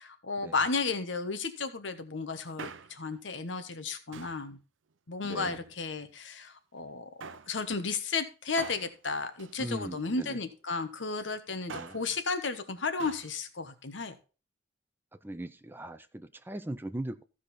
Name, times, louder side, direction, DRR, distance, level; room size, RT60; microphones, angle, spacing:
voice 1, 0.0-4.6 5.1-7.1 7.5-14.1, left 4 dB, 75° left, 9 dB, 1.2 m, -33 dB
Male speech man speaking, 2.4-3.2 4.1-4.5 5.3-6.1 7.2-7.6 8.6-10.2 11.5-12.1 13.0-13.3 13.6-13.7, right 5 dB, 85° right, 0.6 m, -45 dB
voice 2, 5.2-5.5 9.6-10.4 11.7-12.0 15.2-17.2, right 1 dB, 10° right, 9 dB, 0.5 m, -39 dB
15.0 x 5.0 x 4.2 m, 0.33 s
head